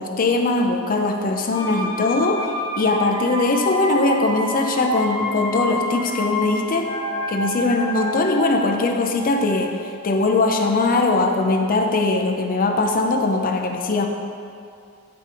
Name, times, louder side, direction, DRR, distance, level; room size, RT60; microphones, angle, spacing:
voice 1, 0.0-2.5 2.8-6.9 7.3-14.1, left 2 dB, 40° left, 3 dB, 0.6 m, -20 dB
sound 1, 1.5-11.2 11.5-11.6, left 1 dB, 60° left, 1.1 m, -30 dB
10.0 x 3.4 x 4.7 m, 2.4 s
head